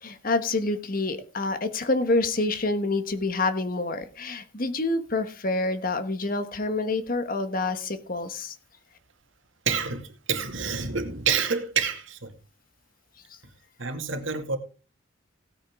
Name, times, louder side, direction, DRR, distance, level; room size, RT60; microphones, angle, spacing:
voice 1, 0.0-8.5, left 2 dB, 45° left, 1.3 m, -27 dB
voice 2, 9.7-12.3 13.8-14.6, right 6 dB, 75° right, 2.2 m, -28 dB
17.0 x 9.1 x 3.6 m
head